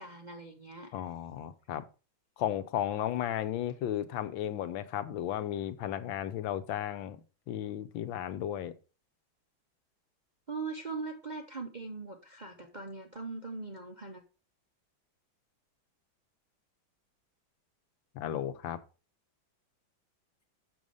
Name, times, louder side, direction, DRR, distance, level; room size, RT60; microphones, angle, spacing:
voice 1, 0.0-1.0 10.5-14.2, right 4 dB, 50° right, 0.5 m, -41 dB
voice 2, 0.9-1.8 2.4-8.7 18.1-18.8, left 11 dB, 75° left, 1.5 m, -34 dB
6.9 x 6.4 x 5.4 m
omnidirectional pair, 2.2 m